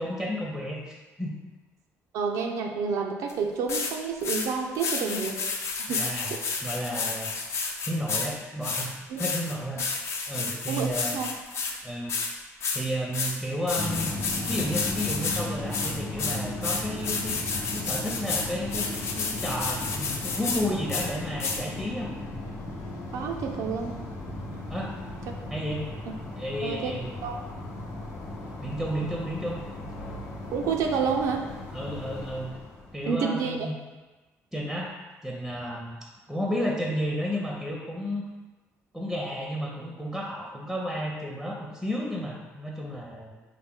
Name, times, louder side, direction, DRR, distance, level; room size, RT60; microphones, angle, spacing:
voice 1, 0.0-1.3 5.9-6.3 6.6-7.3 7.9-8.9 9.2-10.0 10.3-11.2 11.8-12.1 12.7-14.1 14.5-17.4 17.7-18.9 19.1-22.1 24.7-24.9 25.5-25.8 26.4-27.1 28.6-29.6 31.7-32.5 32.9-33.7 34.5-34.9 35.2-38.2 38.9-43.4, equal, ahead, -2 dB, 0.6 m, -32 dB
voice 2, 2.1-5.6 5.9-6.4 9.1-9.2 10.7-11.3 23.1-24.0 26.6-26.9 27.2-27.4 30.5-31.5 33.1-33.6, right 5 dB, 85° right, 2 dB, 0.4 m, -29 dB
sound 1, 3.3-3.4 3.7-3.9 4.2-4.5 4.8-8.3 8.6-11.7 12.1-12.3 12.6-12.8 13.1-13.4 13.7-15.4 15.7-20.6 20.9-21.1 21.4-21.6, left 4 dB, 55° left, 0.5 m, -31 dB
sound 2, 13.7-33.2, left 1 dB, 90° left, 0.8 m, -36 dB
4.7 x 2.1 x 3.6 m, 1.2 s
cardioid pair, 105°, 6 cm